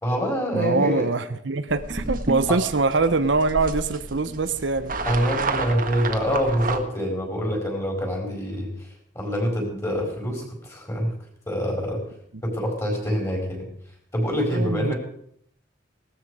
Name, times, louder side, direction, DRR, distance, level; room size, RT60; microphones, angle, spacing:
voice 1, 0.0-1.1 2.5-2.6 5.0-8.9 9.1-11.1 11.5-12.0 12.4-13.7 14.1-15.0, equal, 15° left, 1 dB, 4.7 m, -25 dB
voice 2, 0.5-4.9 14.5-14.9, right 3 dB, 70° right, 11 dB, 0.9 m, -23 dB
sound 1, 1.7-6.8, right 3 dB, 45° right, 1.6 m, -30 dB
18.0 x 13.5 x 4.9 m, 0.68 s
head